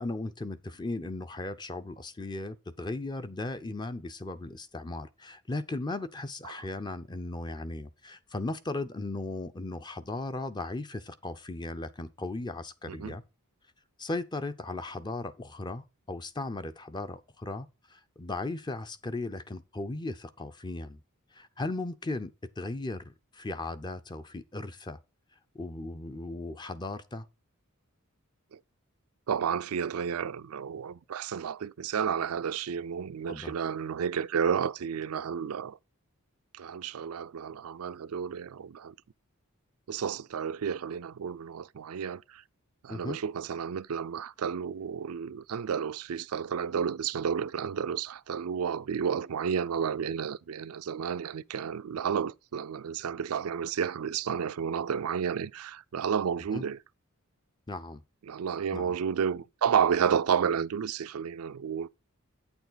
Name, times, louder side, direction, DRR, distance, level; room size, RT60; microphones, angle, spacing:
voice 1, 0.0-13.2 14.0-21.0 21.3-25.0 25.5-27.3 33.3-33.5 42.9-43.2 56.5-56.7 57.7-58.0 58.7-58.9, left 2 dB, 20° left, 0.5 m, -37 dB
voice 2, 29.3-35.8 36.5-38.9 39.9-42.4 42.8-56.8 58.3-61.9, right 7 dB, 80° right, 0.4 m, -31 dB
8.7 x 6.9 x 3.9 m
head